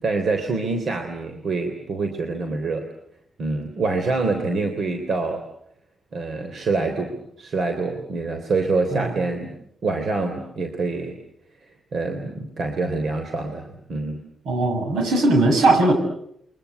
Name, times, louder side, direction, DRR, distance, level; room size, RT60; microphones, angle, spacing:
voice 1, 0.0-2.9 3.4-5.4 6.1-9.5 9.8-11.2 11.9-14.2, right 3 dB, 60° right, 6 dB, 3.4 m, -26 dB
voice 2, 14.4-15.9, right 2 dB, 80° right, 4 dB, 7.7 m, -19 dB
29.0 x 23.5 x 8.1 m, 0.73 s
supercardioid pair, 60°, 0 cm